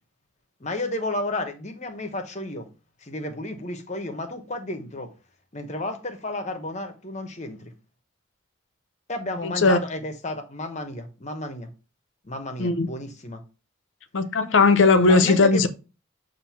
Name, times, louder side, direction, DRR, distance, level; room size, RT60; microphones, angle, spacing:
voice 1, 0.6-2.7 3.0-5.1 5.5-7.7 9.1-11.7 12.2-13.4 15.1-15.7, left 2 dB, 35° left, 0.9 m, -32 dB
voice 2, 9.4-9.8 12.6-12.9 14.1-15.7, left 3 dB, 70° left, 0.7 m, -18 dB
7.5 x 2.7 x 5.6 m
head